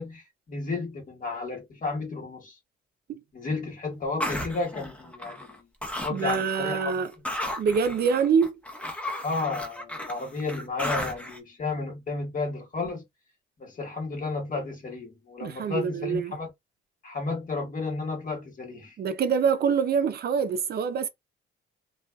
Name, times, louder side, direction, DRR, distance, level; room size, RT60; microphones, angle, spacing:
voice 1, 0.0-2.6 3.3-5.7 6.0-7.0 9.2-13.0 13.6-16.5 17.0-19.0, left 3 dB, 40° left, 1.2 m, -32 dB
sound 1, 4.2-5.6 5.8-6.6 6.9-11.4, left 1 dB, 5° left, 0.7 m, -34 dB
voice 2, 6.1-7.1 7.6-8.6 15.4-16.4 19.0-21.1, right 6 dB, 50° right, 0.5 m, -25 dB
2.5 x 2.3 x 2.2 m
cardioid pair, 90°, 20 cm